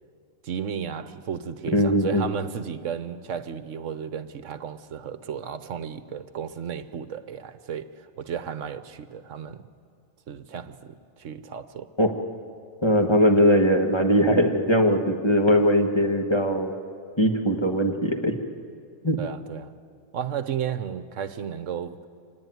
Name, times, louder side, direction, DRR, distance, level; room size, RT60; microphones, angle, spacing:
voice 1, 0.4-9.7 10.3-11.9 19.2-19.7 20.1-22.1, right 8 dB, 65° right, 1.2 m, -34 dB
voice 2, 1.7-2.3 12.0-12.1 12.8-16.7 17.2-18.3 19.0-19.2, equal, 20° left, 1.5 m, -20 dB
25.5 x 19.0 x 9.4 m
omnidirectional pair, 1.5 m